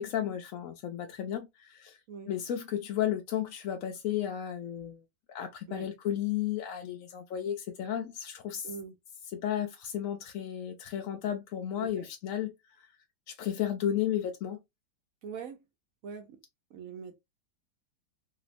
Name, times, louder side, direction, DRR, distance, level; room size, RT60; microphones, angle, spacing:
voice 1, 0.0-2.0 2.3-5.0 5.3-8.7 9.3-12.5 13.3-14.6, left 10 dB, 70° left, 0.8 m, -33 dB
voice 2, 15.2-15.6 16.0-16.4 16.7-17.2, right 6 dB, 65° right, 0.9 m, -42 dB
3.0 x 3.0 x 2.5 m
omnidirectional pair, 1.8 m